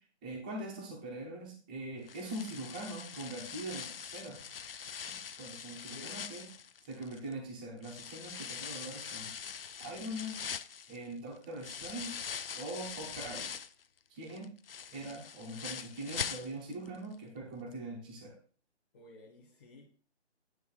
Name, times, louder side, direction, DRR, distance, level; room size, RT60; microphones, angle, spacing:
voice 1, 0.2-4.4 5.0-6.5 6.9-9.3 9.8-10.4 10.9-12.2 12.5-13.5 14.1-14.5 14.9-18.3, right 1 dB, 10° right, -2 dB, 0.7 m, -42 dB
sound 1, 2.1-7.3 7.8-13.8 14.2-16.9 17.1-17.2 17.7-17.8, left 7 dB, 55° left, 0.5 m, -43 dB
voice 2, 5.9-6.3 18.9-19.9, left 2 dB, 20° left, -5 dB, 1.1 m, -54 dB
9.2 x 3.3 x 6.2 m, 0.40 s
figure-of-eight pair, 160°, 34 cm